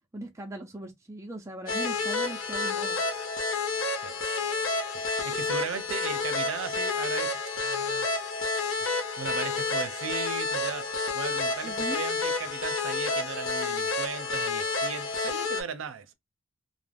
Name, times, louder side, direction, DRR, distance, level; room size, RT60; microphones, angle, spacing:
voice 1, 0.1-3.0 11.6-12.0, right 2 dB, 15° right, 0.3 m, -39 dB
sound 1, 1.7-15.6, left 3 dB, 85° left, 0.6 m, -30 dB
voice 2, 4.0-4.5 4.9-8.1 9.2-10.9 11.1-16.1, right 6 dB, 80° right, 0.5 m, -37 dB
2.4 x 2.0 x 3.3 m
head